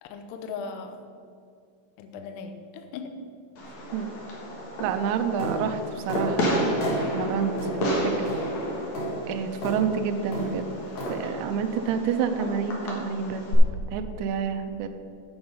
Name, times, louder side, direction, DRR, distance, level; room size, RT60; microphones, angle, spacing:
voice 1, 0.0-1.1 2.0-3.1, left 5 dB, 85° left, 6 dB, 2.4 m, -38 dB
Fireworks, 3.6-13.6, equal, 65° left, 1.8 m, -32 dB
voice 2, 4.8-6.9 7.1-8.3 9.3-10.7 11.1-13.6 13.9-14.9, right 7 dB, 85° right, 6 dB, 2.6 m, -29 dB
sound 1, 5.4-5.6 6.1-6.3 6.8-7.0 7.6-7.7 8.3-8.4 8.9-9.1 9.6-9.8 10.3-10.5 11.0-11.1, right 1 dB, 50° left, 1.9 m, -31 dB
7.9 x 7.9 x 5.5 m, 2.3 s
omnidirectional pair, 5.7 m